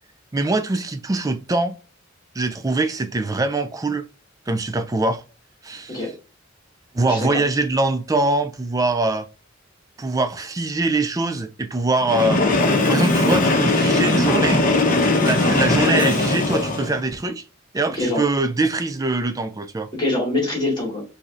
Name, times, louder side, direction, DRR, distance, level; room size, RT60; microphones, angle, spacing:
voice 1, 0.3-1.8 2.4-4.1 4.5-5.2 5.6-6.0 6.9-9.3 10.0-12.4 12.9-14.6 15.2-17.4 17.7-19.9, right 2 dB, 15° right, 0.3 m, -23 dB
voice 2, 7.0-7.4 17.9-18.2 19.9-21.0, left 2 dB, 25° left, 2.1 m, -24 dB
Train, 12.0-17.0, left 2 dB, 40° left, 0.9 m, -19 dB
5.1 x 2.7 x 2.5 m
head